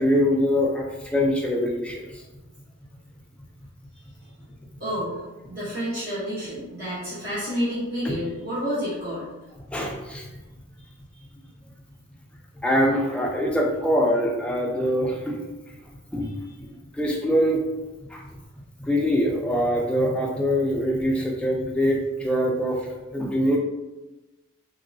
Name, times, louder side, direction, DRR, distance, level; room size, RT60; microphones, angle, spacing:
voice 1, 0.0-2.0 9.7-10.3 12.6-15.4 16.1-16.3 16.6-16.7 16.9-17.6 18.1-18.2 18.9-22.8 23.1-23.6, equal, 5° left, -1 dB, 0.3 m, -23 dB
voice 2, 4.8-9.3, equal, 50° right, -10 dB, 0.9 m, -29 dB
3.0 x 2.7 x 2.6 m, 1.1 s
head